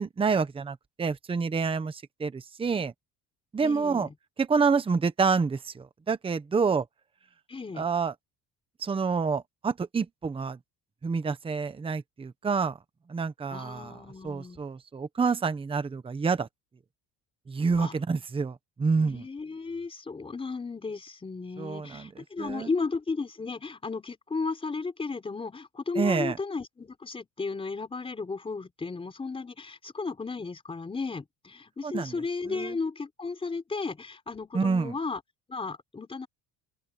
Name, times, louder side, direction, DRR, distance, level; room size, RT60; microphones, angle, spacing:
voice 1, 0.0-2.9 3.5-4.1 4.4-6.8 7.8-8.1 8.8-10.6 11.0-12.8 13.1-13.9 14.2-16.5 17.5-19.2 21.6-22.1 22.4-22.7 26.0-26.4 31.8-32.2 32.5-32.8 34.5-34.9, right 5 dB, 15° right, 0.9 m, -28 dB
voice 2, 3.6-4.1 7.5-7.9 13.5-14.6 17.8-17.9 19.1-35.2 35.5-36.3, left 4 dB, 15° left, 4.4 m, -34 dB
open air
cardioid pair, 170°, 37 cm